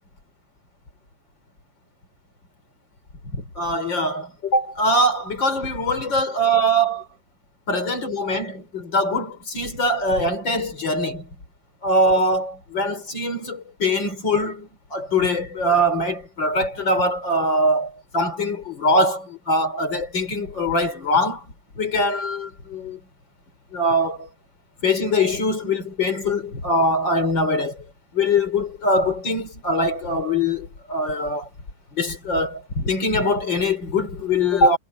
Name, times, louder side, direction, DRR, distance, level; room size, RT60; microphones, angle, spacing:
voice 1, 3.3-7.1 7.7-11.3 11.8-21.4 21.8-23.0 23.7-24.3 24.8-27.8 28.1-31.5 31.9-34.8, left 1 dB, 30° left, 4.8 m, -22 dB
omnidirectional pair, 4.3 m